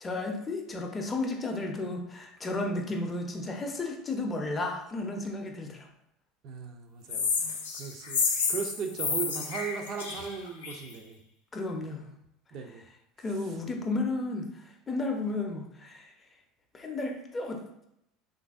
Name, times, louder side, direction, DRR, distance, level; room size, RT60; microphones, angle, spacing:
voice 1, 0.0-5.9 11.5-12.0 13.2-14.5 14.9-16.1 16.7-17.6, left 2 dB, 25° left, 2 dB, 0.6 m, -33 dB
voice 2, 6.4-7.4 7.7-11.2 12.5-12.8, right 6 dB, 50° right, 4 dB, 0.5 m, -37 dB
sound 1, 7.1-10.9, left 5 dB, 80° left, 0.5 m, -30 dB
3.2 x 2.5 x 2.4 m, 0.79 s
hypercardioid pair, 75°, 0 cm